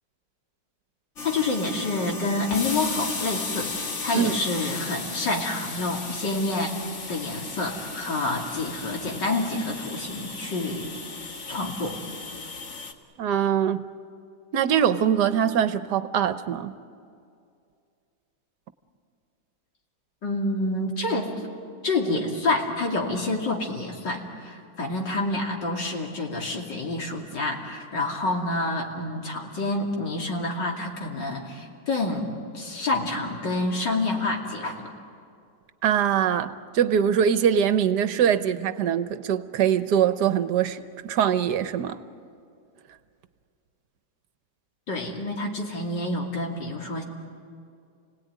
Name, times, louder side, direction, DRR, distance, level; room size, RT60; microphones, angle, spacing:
voice 1, 1.2-3.7 4.0-6.7 7.1-10.9 11.5-12.0 20.2-21.4 21.8-34.9 44.9-47.0, left 2 dB, 75° left, 0 dB, 3.4 m, -28 dB
sound 1, 1.2-12.9, left 4 dB, 45° left, 1.7 m, -35 dB
voice 2, 13.2-13.9 14.5-16.7 35.8-42.0, right 8 dB, 70° right, 12 dB, 1.4 m, -23 dB
30.0 x 18.0 x 9.4 m, 2.4 s
omnidirectional pair, 1.9 m